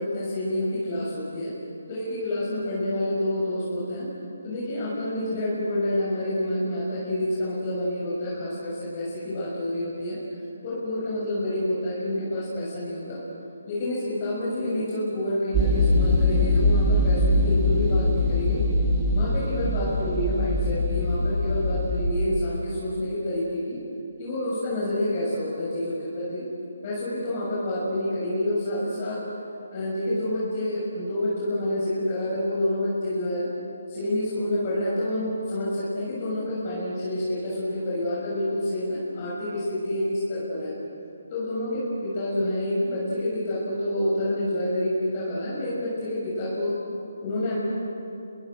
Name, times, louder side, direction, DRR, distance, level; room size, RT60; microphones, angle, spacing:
voice 1, 0.0-1.5 1.9-4.1 4.4-10.2 10.6-13.2 13.7-18.6 19.1-23.8 24.2-26.5 26.8-29.2 29.7-33.5 33.9-40.7 41.3-46.7 47.2-47.6, left 1 dB, 35° left, -6 dB, 6.7 m, -28 dB
sound 1, 15.5-22.1, left 1 dB, 15° right, 4.1 m, -22 dB
29.0 x 23.0 x 6.4 m, 2.7 s
hypercardioid pair, 155°, 0 cm